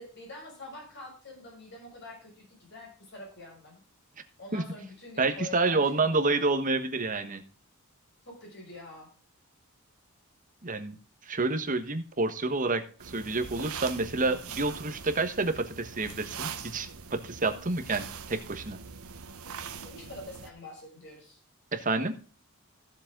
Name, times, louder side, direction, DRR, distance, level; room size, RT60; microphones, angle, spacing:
voice 1, 0.0-3.8 4.4-6.4 8.3-9.1 19.8-21.4, left 2 dB, 50° left, -1 dB, 6.3 m, -46 dB
voice 2, 5.2-7.4 10.6-11.0 11.2-18.8 21.7-22.1, right 3 dB, 35° right, 8 dB, 1.3 m, -29 dB
sound 1, 13.0-20.5, right 6 dB, 80° right, 1.3 m, -42 dB
15.0 x 7.3 x 3.8 m, 0.38 s
head